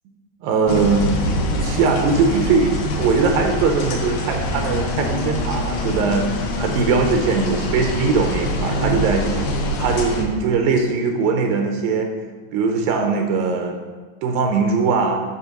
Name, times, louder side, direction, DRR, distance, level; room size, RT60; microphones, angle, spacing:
voice 1, 0.4-1.3 1.6-12.1 12.5-13.8 14.2-15.2, right 4 dB, 90° right, 4 dB, 2.0 m, -20 dB
sound 1, 0.7-10.2, equal, 70° left, 2.2 m, -25 dB
Wind instrument woodwind instrument, 4.4-9.0, left 6 dB, 85° left, 2.1 m, -31 dB
8.4 x 4.5 x 6.5 m, 1.5 s
omnidirectional pair, 4.9 m